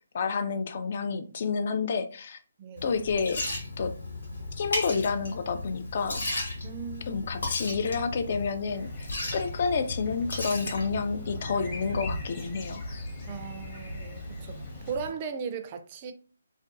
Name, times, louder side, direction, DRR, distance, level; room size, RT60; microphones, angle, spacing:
voice 1, 0.1-2.4 2.8-3.4 3.8-3.9 4.5-6.2 7.1-13.0, left 5 dB, 50° left, 0.3 m, -29 dB
Liquid, 2.8-15.1, left 2 dB, 70° left, 1.0 m, -36 dB
voice 2, 6.6-7.2 13.3-16.1, right 6 dB, 30° right, 0.4 m, -37 dB
sound 1, 8.6-15.0, left 1 dB, 25° left, 0.8 m, -44 dB
2.4 x 2.2 x 2.5 m
figure-of-eight pair, 145°, 0 cm